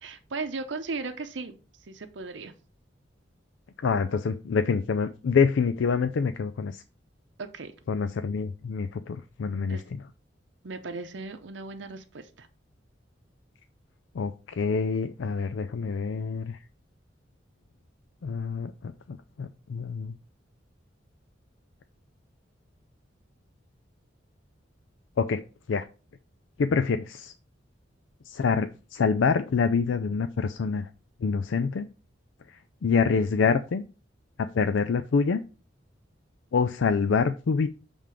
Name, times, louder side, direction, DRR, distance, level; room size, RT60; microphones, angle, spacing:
voice 1, 0.0-1.6 1.8-2.5 7.4-7.7 9.7-9.8 10.6-12.5, right 3 dB, 70° right, 7 dB, 0.7 m, -36 dB
voice 2, 3.8-6.8 7.9-10.0 14.1-16.6 18.2-20.1 25.2-25.4 25.7-25.9 26.6-27.3 28.3-30.9 31.2-31.9 32.5-33.8 34.4-35.4 36.5-37.7, left 5 dB, 85° left, 10 dB, 0.4 m, -26 dB
7.4 x 3.6 x 4.9 m, 0.35 s
head